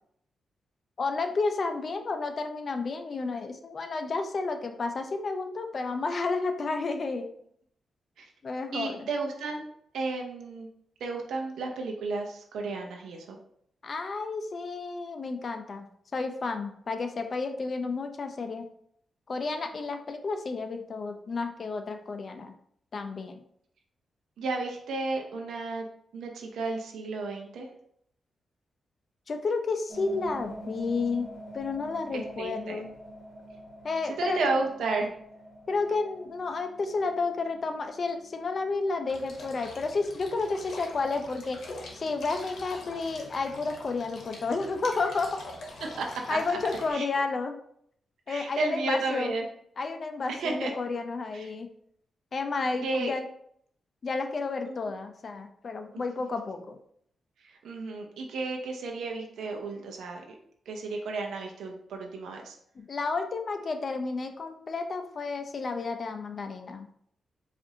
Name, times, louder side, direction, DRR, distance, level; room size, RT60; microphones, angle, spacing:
voice 1, 1.0-7.3 8.4-9.1 13.8-15.9 16.1-18.7 19.3-22.5 22.9-23.4 29.3-31.3 31.5-32.9 33.8-34.4 35.7-41.6 41.9-45.4 46.3-47.6 48.3-49.4 49.8-51.7 52.3-53.3 54.0-56.8 62.8-66.9, left 3 dB, 50° left, 6 dB, 0.5 m, -31 dB
voice 2, 8.7-9.6 9.9-10.7 11.0-13.4 24.4-25.9 26.1-27.7 32.1-32.8 34.1-35.1 46.0-46.4 46.9-47.1 48.3-49.5 50.3-50.7 51.3-51.5 52.8-53.1 54.7-54.8 57.4-60.2 60.7-62.6, right 3 dB, 85° right, 2 dB, 0.6 m, -32 dB
sound 1, 29.9-41.7, right 1 dB, 10° right, 1.5 m, -47 dB
sound 2, 39.1-46.9, left 2 dB, 75° left, 0.9 m, -45 dB
4.9 x 2.6 x 2.7 m, 0.68 s
cardioid pair, 80°, 0 cm